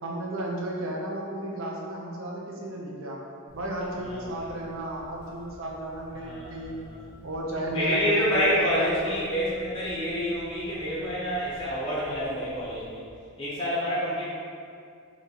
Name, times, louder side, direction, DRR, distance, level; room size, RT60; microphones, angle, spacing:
voice 1, 0.0-3.2 3.5-6.9 7.2-9.2, right 1 dB, 70° right, -3 dB, 0.6 m, -33 dB
Telephone, 3.5-13.2, equal, 50° right, 1.2 m, -51 dB
voice 2, 4.0-4.5 6.2-7.0 7.7-13.0 13.4-14.2, equal, 25° left, -8 dB, 0.6 m, -28 dB
3.8 x 3.0 x 2.8 m, 2.3 s
head